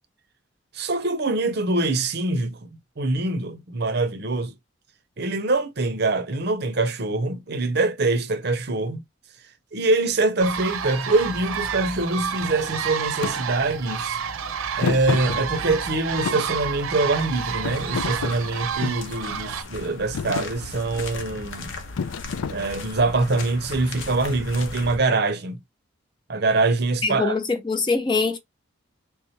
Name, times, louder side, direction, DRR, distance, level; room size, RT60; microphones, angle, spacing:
voice 1, 0.7-2.7 3.0-4.5 5.2-9.0 9.7-14.2 14.8-21.7 22.5-25.6 26.3-27.4, right 2 dB, 50° right, 0.7 m, -24 dB
sound 1, 10.4-19.6, right 7 dB, 85° right, 0.8 m, -30 dB
Thump thud, 13.2-13.4 14.8-15.9 16.2-17.2 17.6-19.1 19.7-19.9 20.1-20.5 22.0-23.0, left 6 dB, 90° left, 0.4 m, -30 dB
sound 2, 17.7-25.0, left 3 dB, 65° left, 0.9 m, -37 dB
voice 2, 27.0-28.4, left 4 dB, 20° left, 0.4 m, -23 dB
3.4 x 3.2 x 2.8 m
head